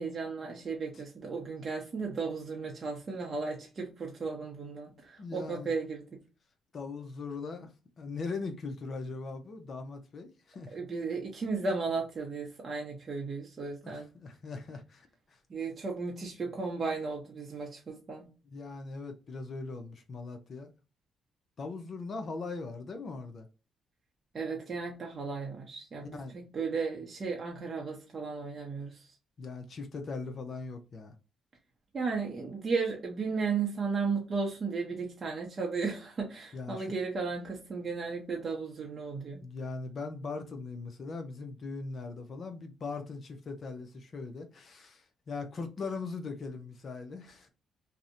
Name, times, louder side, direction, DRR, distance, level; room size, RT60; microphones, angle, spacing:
voice 1, 0.0-6.2 10.7-14.1 15.5-18.3 24.3-29.2 31.9-39.5, right 4 dB, 40° right, 0.6 m, -35 dB
voice 2, 5.2-5.7 6.7-7.7 8.0-10.8 13.8-15.4 18.5-20.7 21.6-23.5 26.1-26.4 29.4-31.1 36.5-36.9 39.4-47.5, left 4 dB, 50° left, 0.5 m, -40 dB
2.6 x 2.1 x 2.4 m
cardioid pair, 90°, 0 cm